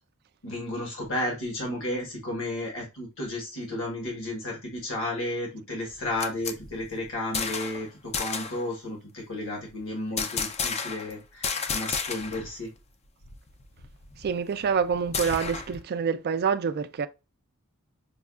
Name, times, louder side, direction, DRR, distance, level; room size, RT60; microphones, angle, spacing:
voice 1, 0.4-12.7, left 1 dB, 65° left, 1.3 m, -33 dB
sound 1, 5.9-7.8 8.1-8.6 10.2-11.1 11.4-12.5 12.8-12.9 13.2-15.8, left 5 dB, 30° left, 0.4 m, -32 dB
voice 2, 14.2-17.1, right 6 dB, 45° right, 0.4 m, -27 dB
5.3 x 2.3 x 2.3 m
head